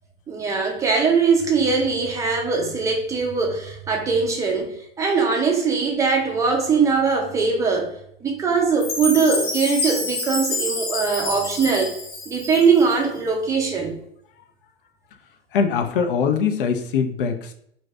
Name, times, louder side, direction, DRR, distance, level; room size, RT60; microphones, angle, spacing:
voice 1, 0.3-4.7 5.0-7.9 8.2-12.0 12.3-14.0, right 5 dB, 10° right, 0.4 m, -21 dB
Chime, 8.8-13.0, left 2 dB, 35° left, 1.0 m, -28 dB
voice 2, 15.5-17.5, left 6 dB, 55° left, 0.5 m, -22 dB
2.6 x 2.3 x 3.2 m
figure-of-eight pair, 90°, 32 cm